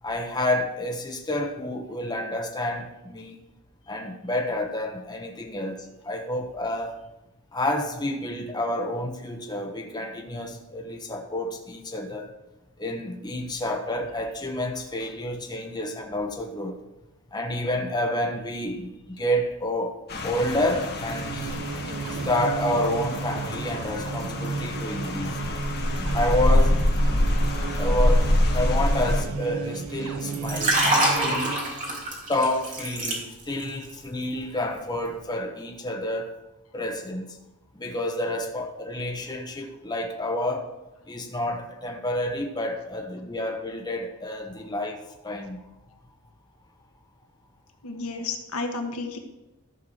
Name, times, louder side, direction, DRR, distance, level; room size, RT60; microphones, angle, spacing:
voice 1, 0.0-3.4 3.9-7.0 7.5-12.3 12.8-16.8 17.3-21.5 22.2-25.4 26.1-26.8 27.8-31.6 32.3-36.4 36.7-37.4 37.7-40.7 41.1-45.6, left 1 dB, 20° left, 1.1 m, -29 dB
Rain, 20.1-29.2, left 1 dB, 45° left, 1.3 m, -25 dB
sound 1, 20.9-31.9, right 4 dB, 70° right, 0.8 m, -33 dB
Liquid, 30.3-33.6 33.9-34.2, right 1 dB, 35° right, 2.7 m, -25 dB
voice 2, 47.8-49.2, left 3 dB, 75° left, 1.4 m, -31 dB
14.0 x 4.7 x 6.4 m
head